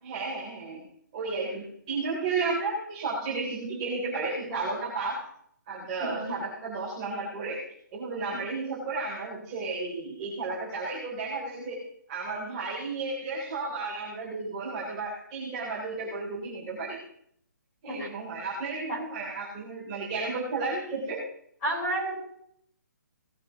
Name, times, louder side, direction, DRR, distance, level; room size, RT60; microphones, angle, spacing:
voice 1, 0.0-0.9 1.1-5.2 5.7-11.8 12.1-17.0 17.8-21.3, right 3 dB, 15° right, -7 dB, 3.4 m, -33 dB
voice 2, 6.0-6.3 17.9-18.1 18.9-19.0 21.6-22.2, right 1 dB, 10° left, -5 dB, 5.5 m, -31 dB
19.5 x 9.6 x 3.0 m, 0.66 s
hypercardioid pair, 175°, 10 cm